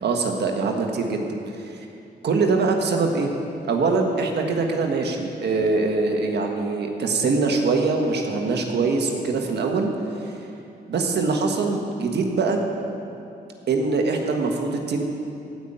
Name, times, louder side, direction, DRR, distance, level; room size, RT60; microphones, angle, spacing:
voice 1, 0.0-1.3 1.7-1.8 2.2-3.3 3.7-9.9 10.2-10.3 10.9-12.6 13.7-15.0, right 3 dB, 70° right, 2 dB, 1.5 m, -23 dB
15.5 x 5.7 x 8.8 m, 2.7 s
cardioid pair, 75°, 18 cm